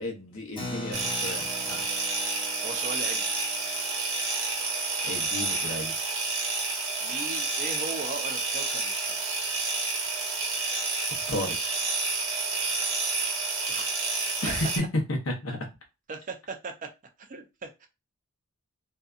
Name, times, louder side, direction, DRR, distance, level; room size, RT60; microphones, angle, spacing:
voice 1, 0.0-1.8 5.0-5.9 11.3-11.6 14.4-14.8 15.1-15.6, left 1 dB, 70° left, 0.8 m, -33 dB
Keyboard (musical), 0.6-6.6, left 1 dB, 20° left, 0.5 m, -43 dB
sound 1, 0.9-14.8, right 3 dB, 70° right, 1.1 m, -29 dB
voice 2, 2.6-3.4 7.0-9.5 12.6-12.8 13.7-13.9 14.4-14.5 16.1-16.9 17.2-17.9, right 4 dB, 35° right, 0.4 m, -38 dB
2.7 x 2.3 x 2.4 m
head